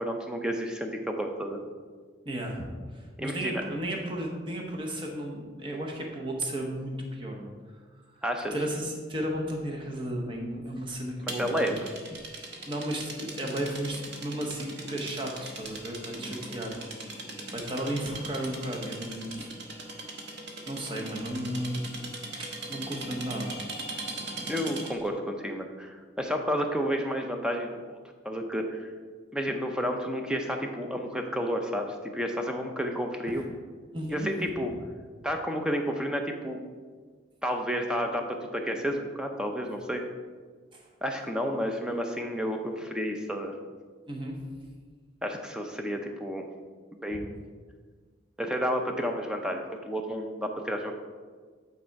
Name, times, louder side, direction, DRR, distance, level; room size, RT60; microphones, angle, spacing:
voice 1, 0.0-1.6 3.2-3.6 8.2-8.5 11.2-11.9 16.2-16.5 24.5-28.0 28.2-28.9 29.3-33.4 34.1-34.7 35.2-36.6 37.4-40.0 41.0-43.6 45.2-46.5 47.0-47.4 48.4-50.9, equal, 5° right, 3 dB, 0.6 m, -31 dB
voice 2, 2.3-2.7 2.9-7.5 8.5-11.8 12.7-16.7 17.5-19.5 20.6-22.1 22.4-23.5 33.3-33.4 33.9-34.3 40.7-40.9 44.1-44.4, right 1 dB, 25° right, 0 dB, 0.9 m, -34 dB
Bird Rattle, 11.3-25.1, right 2 dB, 60° right, 1.0 m, -39 dB
8.8 x 4.2 x 4.6 m, 1.5 s
head